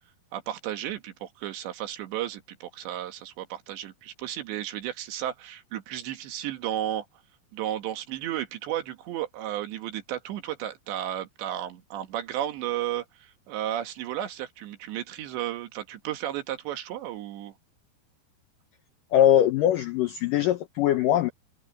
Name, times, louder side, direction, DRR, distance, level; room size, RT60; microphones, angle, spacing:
voice 1, 0.3-7.1 7.5-17.5, right 12 dB, 85° right, 4.0 m, -33 dB
voice 2, 19.1-21.3, left 11 dB, 80° left, 1.9 m, -21 dB
omnidirectional pair, 4.9 m